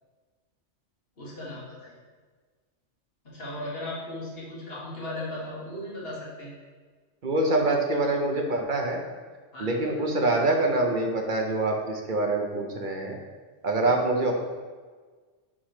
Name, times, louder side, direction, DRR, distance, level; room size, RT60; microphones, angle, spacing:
voice 1, 1.2-1.9 3.2-6.5 9.5-10.1 13.8-13.9, left 1 dB, 50° left, -5 dB, 1.8 m, -37 dB
voice 2, 7.2-9.0 9.6-13.2 13.6-14.3, right 2 dB, 45° right, 2 dB, 0.8 m, -25 dB
7.3 x 3.1 x 4.8 m, 1.4 s
omnidirectional pair, 1.3 m